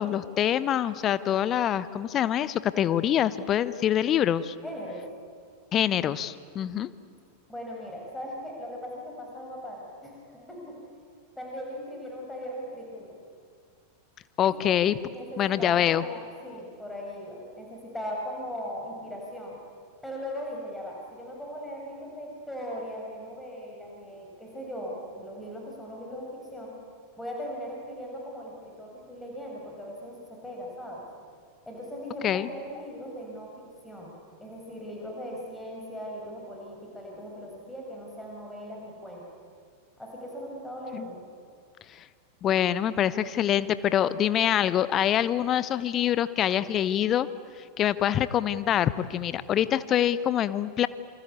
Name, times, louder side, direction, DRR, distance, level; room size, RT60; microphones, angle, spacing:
voice 1, 0.0-4.5 5.7-6.9 14.4-15.0 15.4-16.1 32.2-32.5 40.9-41.1 42.4-47.3 47.8-50.9, left 10 dB, 30° left, 16 dB, 1.0 m, -25 dB
voice 2, 4.6-5.1 7.5-10.8 11.4-13.2 14.5-14.8 15.1-19.6 20.0-26.8 27.2-31.0 31.7-39.2 40.0-41.2, equal, 5° left, -1 dB, 6.6 m, -39 dB
27.5 x 25.0 x 8.5 m, 2.2 s
figure-of-eight pair, 90°, 0 cm